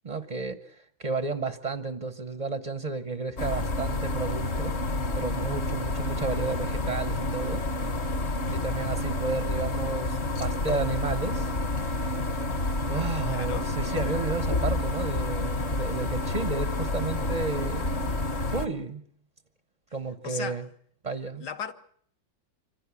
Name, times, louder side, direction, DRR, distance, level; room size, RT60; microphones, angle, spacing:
voice 1, 0.0-4.7 5.1-7.6 8.5-11.5 12.9-18.0 18.5-19.0 19.9-20.6 21.0-21.5, right 4 dB, 30° right, 0.7 m, -32 dB
sound 1, 3.4-18.7, left 2 dB, 35° left, 1.4 m, -29 dB
voice 2, 13.3-13.7 20.2-20.6 21.4-21.7, left 7 dB, 60° left, 1.7 m, -36 dB
25.0 x 16.5 x 8.3 m
omnidirectional pair, 2.1 m